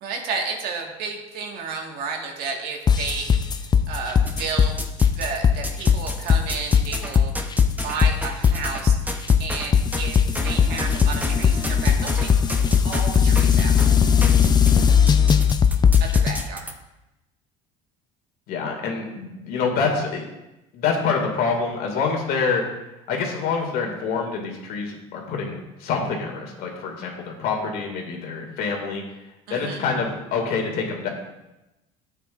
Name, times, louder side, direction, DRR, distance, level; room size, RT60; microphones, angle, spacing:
voice 1, 0.0-4.8 5.1-7.4 7.8-12.5 12.8-14.0 16.0-16.7 29.5-29.9, right 5 dB, 70° right, 2 dB, 1.8 m, -32 dB
sound 1, 2.9-16.4, left 7 dB, 25° left, 0.5 m, -18 dB
sound 2, 4.2-5.3 5.6-16.7, right 1 dB, 10° right, 0.9 m, -34 dB
voice 2, 18.5-20.2 20.7-22.6 23.1-29.0 29.5-31.1, left 5 dB, 65° left, 1 dB, 2.4 m, -26 dB
12.5 x 8.3 x 2.6 m, 0.96 s
supercardioid pair, 95°, 17 cm